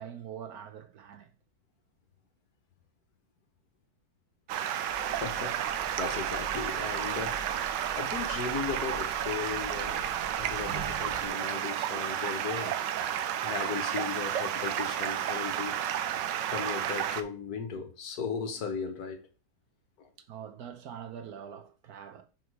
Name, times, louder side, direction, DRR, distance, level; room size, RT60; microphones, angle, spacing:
voice 1, 0.0-1.3 20.2-22.2, right 8 dB, 65° right, 1.2 m, -44 dB
Stream, 4.5-17.2, right 10 dB, 90° right, 1.3 m, -32 dB
sound 1, 4.9-11.3, right 2 dB, 35° right, 1.8 m, -46 dB
voice 2, 5.0-10.1 10.4-12.8 13.4-15.9 16.5-19.3 20.0-20.1, left 6 dB, 65° left, 1.4 m, -37 dB
6.3 x 4.7 x 4.7 m
omnidirectional pair, 1.9 m